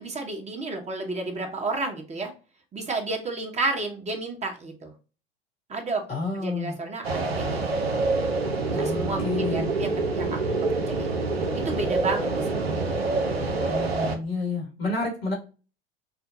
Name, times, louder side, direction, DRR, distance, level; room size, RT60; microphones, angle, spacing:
voice 1, 0.0-2.3 2.7-4.9 5.7-6.0 6.4-7.8 8.6-11.1 11.5-12.8, right 3 dB, 20° right, 2 dB, 1.1 m, -32 dB
voice 2, 6.1-6.8 8.7-9.8 13.7-15.3, left 3 dB, 80° left, -1 dB, 2.2 m, -30 dB
sound 1, 7.0-14.2, right 3 dB, 90° right, 0.7 m, -26 dB
5.7 x 2.2 x 2.6 m, 0.34 s
hypercardioid pair, 80°, 30 cm